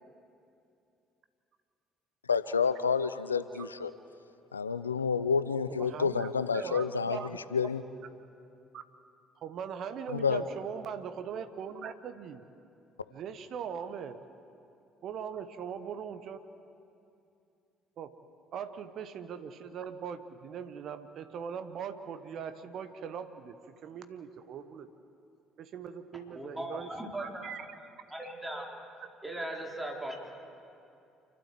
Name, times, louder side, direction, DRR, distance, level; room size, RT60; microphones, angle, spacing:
voice 1, 2.3-3.9 4.5-7.2 7.5-7.8 10.1-10.4, left 5 dB, 90° left, 13 dB, 0.5 m, -29 dB
voice 2, 5.7-7.4 8.7-8.8 9.4-12.4 13.1-14.3 15.0-16.4 18.0-18.2 18.5-24.9 25.6-26.9 27.2-27.6, right 7 dB, 55° right, 10 dB, 1.0 m, -40 dB
voice 3, 26.3-27.5 28.2-28.6 29.2-30.3, right 1 dB, 10° right, -1 dB, 4.2 m, -38 dB
28.5 x 12.5 x 7.6 m, 2.6 s
figure-of-eight pair, 50°, 0 cm